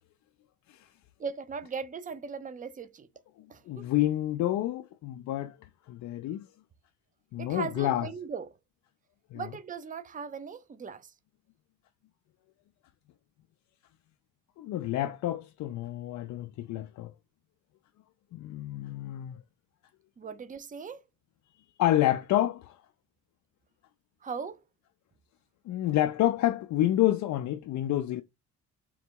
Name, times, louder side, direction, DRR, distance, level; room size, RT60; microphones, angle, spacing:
voice 1, 1.2-3.1 3.5-3.9 7.4-8.5 9.3-11.1 20.2-21.0 24.2-24.6, right 6 dB, 25° right, 0.6 m, -38 dB
voice 2, 3.7-5.6 5.9-6.4 7.3-8.1 9.3-9.5 14.6-17.1 18.3-19.4 21.8-22.7 25.7-28.2, left 13 dB, 70° left, 0.5 m, -28 dB
3.8 x 2.2 x 4.5 m
cardioid pair, 90°, 30 cm